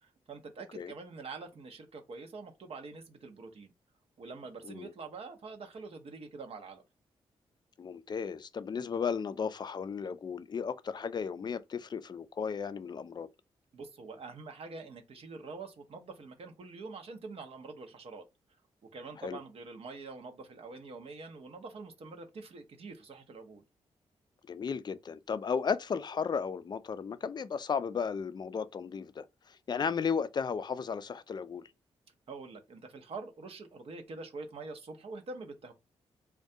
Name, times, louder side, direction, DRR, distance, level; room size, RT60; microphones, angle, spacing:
voice 1, 0.0-3.7 4.2-6.8 13.7-18.3 18.9-23.6 32.3-35.7, right 4 dB, 60° right, 0.6 m, -45 dB
voice 2, 7.8-13.3 19.2-19.4 24.5-31.7, left 6 dB, 40° left, 0.3 m, -34 dB
2.2 x 2.2 x 2.7 m
supercardioid pair, 50°, 12 cm